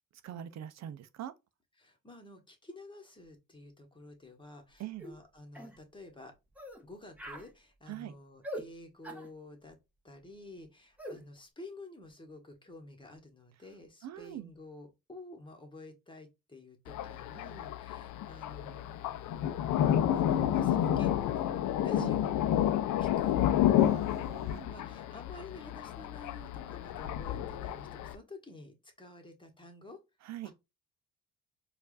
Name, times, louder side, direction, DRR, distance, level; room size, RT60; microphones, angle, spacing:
voice 1, 0.2-1.3 4.8-5.1 7.9-8.1 14.0-14.5 22.0-22.1 23.8-24.7 30.2-30.5, right 12 dB, 65° right, 0.5 m, -43 dB
voice 2, 1.8-6.3 6.8-9.8 10.0-19.6 20.1-21.5 21.8-22.4 23.0-23.5 24.6-30.0 30.4-30.5, left 2 dB, 15° left, 1.3 m, -50 dB
sound 1, 5.0-5.2 5.5-5.8 6.5-6.8 7.2-7.5 8.4-8.7 9.0-9.3 11.0-11.2, equal, 5° right, 1.1 m, -42 dB
Thunder, 16.9-28.2, left 11 dB, 80° left, 0.5 m, -30 dB
4.5 x 2.5 x 2.4 m
cardioid pair, 90°, 30 cm